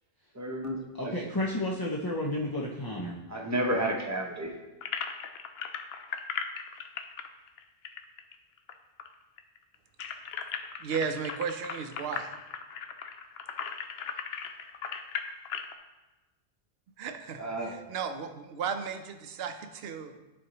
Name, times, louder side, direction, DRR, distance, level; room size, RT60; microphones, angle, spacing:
voice 1, 0.3-1.1 3.3-4.5 17.4-17.8, right 1 dB, 15° right, 0 dB, 0.8 m, -31 dB
voice 2, 1.0-3.2, left 1 dB, 30° left, -4 dB, 0.4 m, -31 dB
sound 1, 4.8-8.7 9.0-9.1 9.4-15.7, left 7 dB, 70° left, 0.8 m, -37 dB
voice 3, 10.8-12.3 17.0-20.1, right 6 dB, 65° right, 8 dB, 0.8 m, -35 dB
10.5 x 4.2 x 3.0 m, 1.1 s
omnidirectional pair, 1.1 m